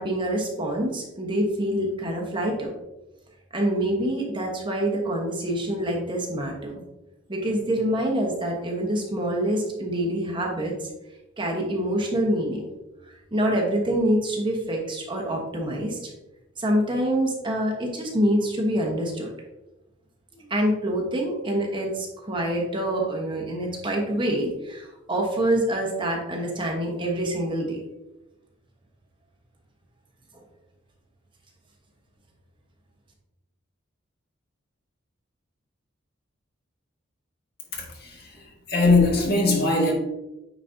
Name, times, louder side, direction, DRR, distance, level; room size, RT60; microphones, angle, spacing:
voice 1, 0.0-2.7 3.5-6.8 7.3-10.9 11.4-12.7 13.3-16.1 16.6-19.3 20.4-27.8 30.3-30.4, right 1 dB, 25° right, 0 dB, 1.0 m, -26 dB
voice 2, 37.7-39.9, left 3 dB, 50° left, -1 dB, 1.6 m, -21 dB
9.0 x 4.1 x 2.6 m, 0.97 s
head